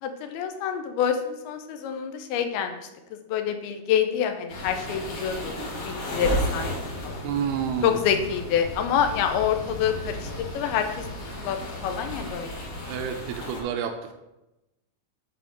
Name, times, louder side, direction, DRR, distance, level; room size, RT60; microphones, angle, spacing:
voice 1, 0.0-2.8 3.3-6.7 7.0-7.2 7.8-11.1 11.4-11.6 11.8-12.5, left 8 dB, 85° left, 7 dB, 2.6 m, -27 dB
sound 1, 4.5-13.6, equal, 45° left, 2.4 m, -34 dB
voice 2, 7.2-8.0 12.9-14.1, right 7 dB, 85° right, 4 dB, 2.4 m, -29 dB
9.2 x 4.3 x 4.6 m, 0.96 s
omnidirectional pair, 4.5 m